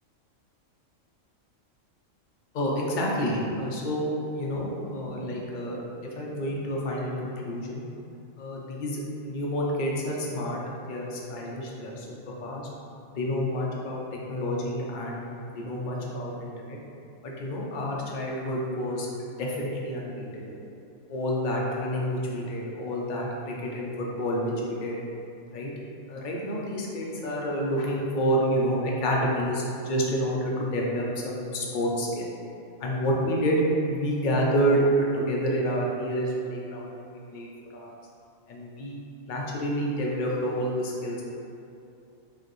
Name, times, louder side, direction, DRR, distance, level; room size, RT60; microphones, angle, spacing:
voice 1, 2.5-5.8 6.2-7.8 8.4-10.6 10.9-12.1 12.4-12.7 13.2-14.0 14.3-15.2 15.5-16.8 17.2-19.1 19.4-20.6 21.1-24.5 24.8-24.9 25.5-25.7 26.1-32.3 32.8-37.0 37.3-37.5 37.7-37.9 38.5-39.0 39.3-41.2, equal, 50° left, -3 dB, 0.6 m, -28 dB
4.6 x 2.6 x 3.0 m, 2.6 s
omnidirectional pair, 1.4 m